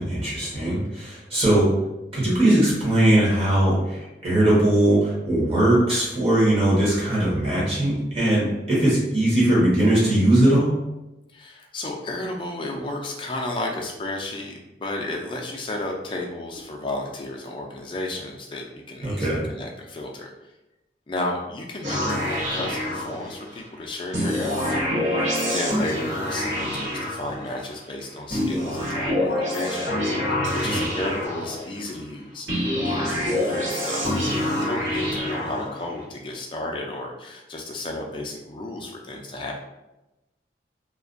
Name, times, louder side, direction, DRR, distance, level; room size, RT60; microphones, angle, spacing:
voice 1, 0.0-1.7 2.1-10.7 19.0-19.4 30.6-30.8, right 1 dB, 30° right, -7 dB, 0.9 m, -20 dB
voice 2, 0.5-0.9 11.3-20.3 21.1-39.6, left 2 dB, 25° left, 0 dB, 0.3 m, -33 dB
sound 1, 21.8-23.6 24.1-27.7 28.3-31.9 32.5-36.0, left 1 dB, 80° right, 1.2 m, -26 dB
2.4 x 2.2 x 2.5 m, 0.98 s
head